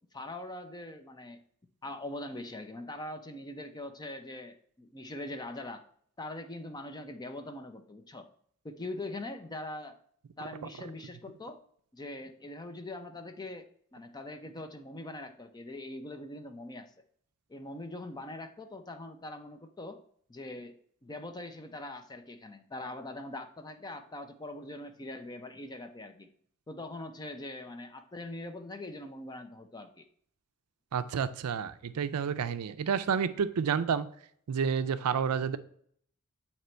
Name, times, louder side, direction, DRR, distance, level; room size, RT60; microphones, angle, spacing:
voice 1, 0.1-1.4 1.8-5.8 6.2-8.3 8.6-9.9 10.4-11.6 11.9-16.9 17.5-20.0 20.3-20.7 21.0-26.3 26.7-30.1, left 2 dB, 20° left, 7 dB, 0.5 m, -42 dB
voice 2, 30.9-34.1 34.5-35.6, right 6 dB, 80° right, 13 dB, 0.4 m, -30 dB
7.9 x 3.0 x 4.3 m, 0.63 s
head